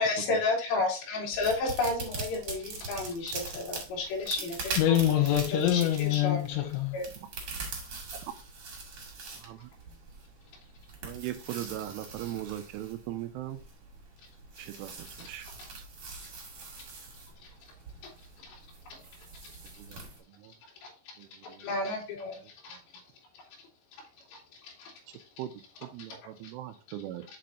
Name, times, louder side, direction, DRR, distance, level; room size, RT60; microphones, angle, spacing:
voice 1, 0.0-5.0 5.6-6.4 6.9-7.1 18.0-18.1 18.4-18.6 18.9-19.0 19.4-19.5 20.8-20.9 21.4-22.8 23.6-23.7 24.3-24.9 26.4-26.5, left 3 dB, 55° left, 3.6 m, -32 dB
sound 1, 1.3-20.2, right 4 dB, 45° right, 2.3 m, -42 dB
voice 2, 4.8-7.0, left 12 dB, 90° left, 3.5 m, -25 dB
voice 3, 9.3-9.7 11.0-13.6 14.6-15.5 15.8-15.9 19.8-20.0 20.3-20.5 21.2-21.7 22.7-22.8 25.1-25.5 25.8-27.2, right 13 dB, 85° right, 2.9 m, -39 dB
7.7 x 4.4 x 3.8 m
omnidirectional pair, 5.9 m